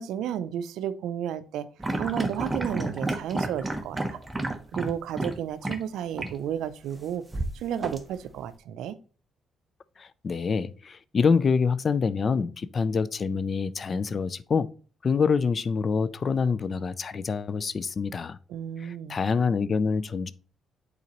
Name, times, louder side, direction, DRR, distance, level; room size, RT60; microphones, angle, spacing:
voice 1, 0.0-1.7 2.0-4.2 4.7-7.2 7.5-9.0 18.5-19.2, right 9 dB, 85° right, 0.4 m, -32 dB
sound 1, 1.8-5.4 5.6-5.8 6.2-6.4 7.3-8.4, right 2 dB, 15° right, 0.8 m, -30 dB
voice 2, 10.0-14.7 15.0-18.4 18.8-20.3, left 5 dB, 40° left, 0.4 m, -26 dB
8.5 x 3.9 x 3.0 m
cardioid pair, 90°, 0 cm